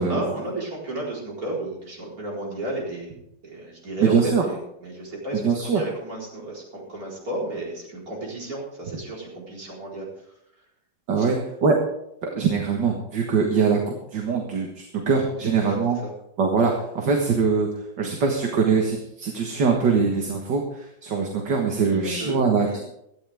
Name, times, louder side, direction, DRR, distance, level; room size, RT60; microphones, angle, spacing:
voice 1, 0.0-10.1 11.2-11.3 15.4-16.1 21.8-22.8, right 1 dB, 50° right, -3 dB, 4.8 m, -33 dB
voice 2, 4.0-4.4 5.3-5.8 11.1-11.8 12.3-16.0 16.4-17.7 18.0-22.8, right 5 dB, 70° right, 1 dB, 2.2 m, -22 dB
17.0 x 13.0 x 3.6 m, 0.79 s
omnidirectional pair, 2.0 m